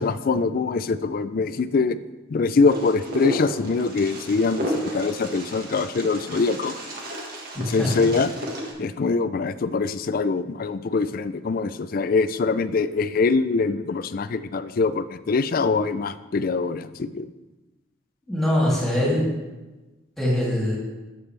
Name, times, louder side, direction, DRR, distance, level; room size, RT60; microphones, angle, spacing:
voice 1, 0.0-2.0 2.3-6.8 7.6-8.3 8.8-17.3, left 4 dB, 45° left, 13 dB, 0.4 m, -23 dB
Wind, 2.7-8.7, equal, 50° right, 1.7 m, -33 dB
voice 2, 7.5-7.9 18.3-19.3 20.2-20.8, left 1 dB, ahead, -7 dB, 2.8 m, -22 dB
13.0 x 7.0 x 3.3 m, 1.2 s
head